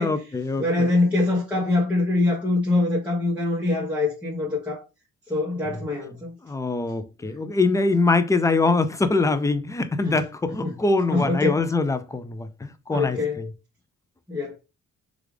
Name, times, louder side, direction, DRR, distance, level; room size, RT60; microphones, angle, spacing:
voice 1, 0.0-0.9 5.7-5.8 6.4-13.5, left 3 dB, 10° left, 0.4 m, -23 dB
voice 2, 0.6-4.8 5.3-6.3 10.1-10.2 10.6-10.8 11.1-11.7 12.9-13.5 14.3-14.6, left 2 dB, 5° right, 1.1 m, -24 dB
3.2 x 2.4 x 3.1 m
cardioid pair, 90°, 30 cm